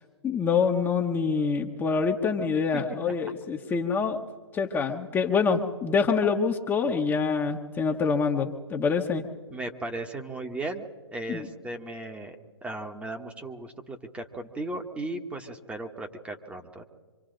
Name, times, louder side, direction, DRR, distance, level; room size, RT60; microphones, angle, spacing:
voice 1, 0.2-4.2 4.5-9.2 11.3-11.5, left 5 dB, 15° left, 2 dB, 1.1 m, -26 dB
voice 2, 9.5-12.4 12.6-16.8, right 2 dB, 10° right, 4 dB, 1.3 m, -36 dB
26.0 x 25.5 x 3.9 m, 1.5 s
figure-of-eight pair, 125°, 14 cm